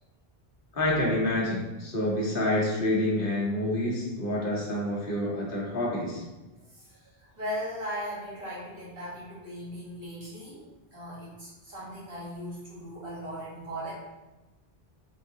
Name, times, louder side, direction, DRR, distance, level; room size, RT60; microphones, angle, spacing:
voice 1, 0.7-6.2, left 1 dB, 60° left, -4 dB, 1.1 m, -28 dB
voice 2, 6.7-13.9, equal, 60° right, -8 dB, 1.6 m, -38 dB
3.9 x 3.5 x 2.7 m, 1.1 s
omnidirectional pair, 1.1 m